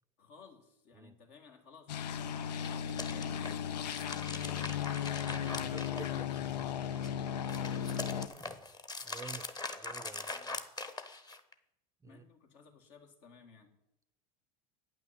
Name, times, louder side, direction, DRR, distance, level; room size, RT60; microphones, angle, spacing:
voice 1, 0.2-5.0 6.0-6.3 7.4-8.6 10.3-10.6 12.0-13.7, left 5 dB, 65° left, 2.2 m, -57 dB
sound 1, 1.9-8.3, left 9 dB, 90° left, 0.5 m, -36 dB
sound 2, 2.4-6.5 6.9-11.5, left 3 dB, 20° left, 1.0 m, -42 dB
voice 2, 5.3-6.7 9.0-9.5 9.8-10.3 12.0-12.2, right 5 dB, 15° right, 0.4 m, -49 dB
8.9 x 6.0 x 7.6 m
hypercardioid pair, 90°, 21 cm